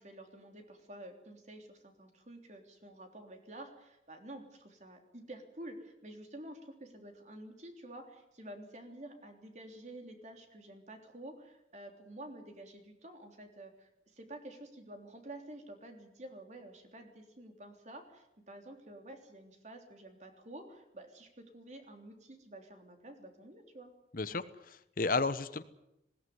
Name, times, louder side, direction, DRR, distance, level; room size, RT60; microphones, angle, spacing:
voice 1, 0.0-23.9, right 1 dB, 40° right, 5 dB, 3.4 m, -50 dB
voice 2, 24.1-25.6, left 3 dB, 50° left, 13 dB, 1.0 m, -33 dB
20.0 x 17.5 x 9.5 m, 0.85 s
head